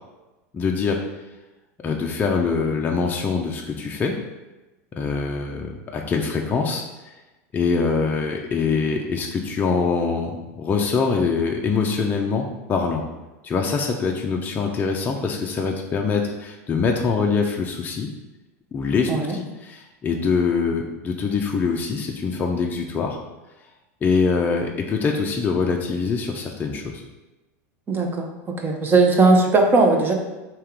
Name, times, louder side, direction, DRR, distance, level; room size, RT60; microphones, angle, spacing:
voice 1, 0.5-1.0 1.8-4.1 5.0-6.8 7.5-13.0 13.4-18.1 18.7-23.2 24.0-27.0, left 5 dB, 20° left, 1 dB, 0.5 m, -24 dB
voice 2, 27.9-28.3 28.6-30.1, right 3 dB, 25° right, 2 dB, 0.7 m, -18 dB
3.5 x 2.9 x 4.6 m, 1.1 s
supercardioid pair, 120°, 8 cm